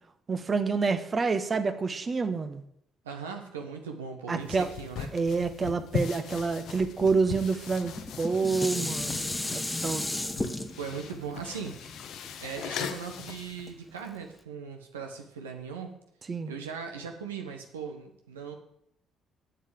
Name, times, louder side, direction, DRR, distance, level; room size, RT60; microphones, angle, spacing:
voice 1, 0.3-2.6 4.3-4.7 5.1-10.0 16.3-16.5, right 4 dB, 35° right, 9 dB, 1.1 m, -28 dB
voice 2, 3.0-5.1 10.8-11.8 12.4-16.0 16.5-18.5, right 6 dB, 80° right, 3 dB, 1.1 m, -39 dB
sound 1, 4.4-13.7, left 7 dB, 60° left, 0.9 m, -39 dB
Dishes pots and pans, 7.8-13.1 13.7-13.8, left 1 dB, 15° left, 1.1 m, -34 dB
8.0 x 7.6 x 8.3 m, 0.74 s
figure-of-eight pair, 45°, 0 cm